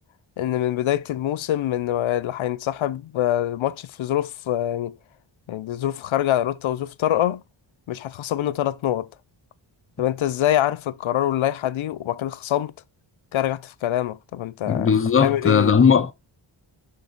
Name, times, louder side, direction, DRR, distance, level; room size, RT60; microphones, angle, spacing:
voice 1, 0.4-5.0 5.5-7.4 7.9-9.1 10.0-12.7 13.3-15.8, left 12 dB, 80° left, 0.6 m, -25 dB
voice 2, 14.7-16.1, left 6 dB, 30° left, 0.5 m, -18 dB
6.4 x 3.4 x 5.3 m
wide cardioid pair, 165°, 47 cm